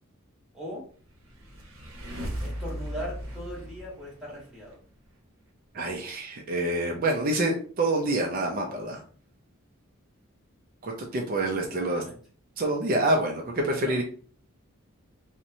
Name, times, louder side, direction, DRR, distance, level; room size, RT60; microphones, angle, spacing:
voice 1, 0.5-0.8 2.4-4.8 11.8-12.2 13.8-14.0, equal, ahead, -6 dB, 1.0 m, -39 dB
sound 1, 1.1-4.7, equal, 70° right, 0.7 m, -37 dB
voice 2, 5.7-9.0 10.8-12.0 12.6-14.0, right 1 dB, 40° right, 1 dB, 0.4 m, -27 dB
2.8 x 2.1 x 2.6 m, 0.44 s
head